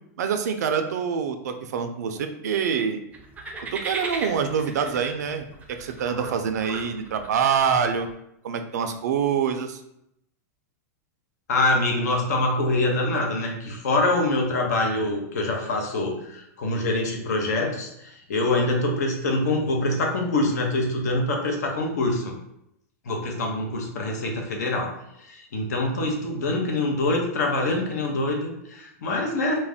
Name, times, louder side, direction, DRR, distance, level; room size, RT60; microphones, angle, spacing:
voice 1, 0.2-3.0 3.7-8.1 8.4-9.8, right 7 dB, 85° right, 7 dB, 0.4 m, -25 dB
sound 1, 3.1-8.1, right 3 dB, 15° right, 0.4 m, -37 dB
voice 2, 11.5-22.3 23.1-24.9 25.2-29.6, left 2 dB, 80° left, 1 dB, 0.7 m, -25 dB
2.4 x 2.1 x 3.4 m, 0.78 s
hypercardioid pair, 130°, 9 cm